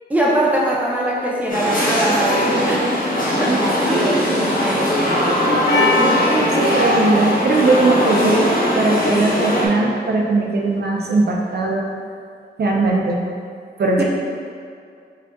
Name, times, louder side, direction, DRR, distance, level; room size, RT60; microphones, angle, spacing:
voice 1, 0.1-3.1 3.4-5.3 6.0-6.3 14.0-14.1, right 1 dB, 10° right, -4 dB, 0.6 m, -22 dB
sound 1, 1.5-9.7, left 1 dB, 55° left, 0.7 m, -19 dB
voice 2, 3.9-4.5 6.0-11.9 12.6-13.2 13.8-14.0, right 3 dB, 70° right, -1 dB, 0.4 m, -19 dB
Percussion, 5.7-10.6, left 3 dB, 90° left, 0.4 m, -27 dB
5.0 x 2.4 x 2.2 m, 2.3 s
wide cardioid pair, 65°, 18 cm